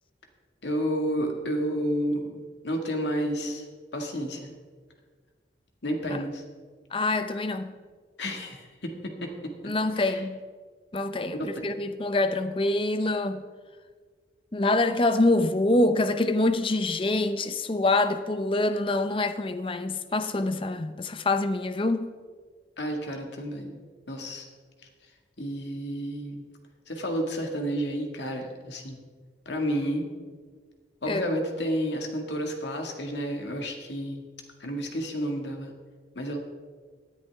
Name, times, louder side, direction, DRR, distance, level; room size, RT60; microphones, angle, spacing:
voice 1, 0.6-2.4 2.6-3.7 3.9-4.5 5.8-6.4 8.2-9.3 10.0-10.2 11.3-11.6 22.8-23.8 24.1-24.5 25.4-26.4 26.9-29.0 29.5-30.1 31.0-34.2 34.6-35.7 36.2-36.4, equal, 75° left, 1.9 m, -31 dB
voice 2, 6.9-7.7 9.6-10.4 10.9-13.4 14.5-22.1 31.1-31.2, left 2 dB, 30° left, 0.6 m, -25 dB
17.5 x 10.0 x 3.5 m
head